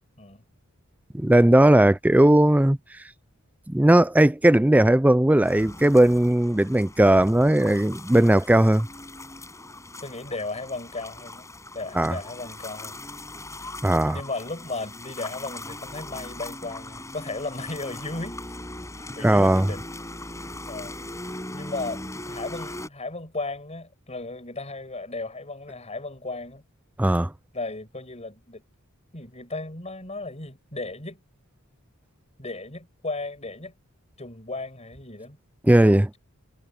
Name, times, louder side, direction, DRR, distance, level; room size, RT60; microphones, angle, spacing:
voice 1, 1.1-2.8 3.7-8.9 12.0-12.2 13.8-14.2 19.2-19.7 27.0-27.3 35.7-36.1, right 1 dB, 5° right, 0.4 m, -18 dB
sound 1, 5.4-22.9, left 2 dB, 15° left, 7.8 m, -40 dB
voice 2, 10.0-11.5 11.7-13.0 14.1-18.4 18.9-19.8 20.7-21.0 21.5-26.6 27.5-28.6 29.1-31.2 32.4-33.7 34.2-35.4, left 2 dB, 30° left, 6.8 m, -35 dB
head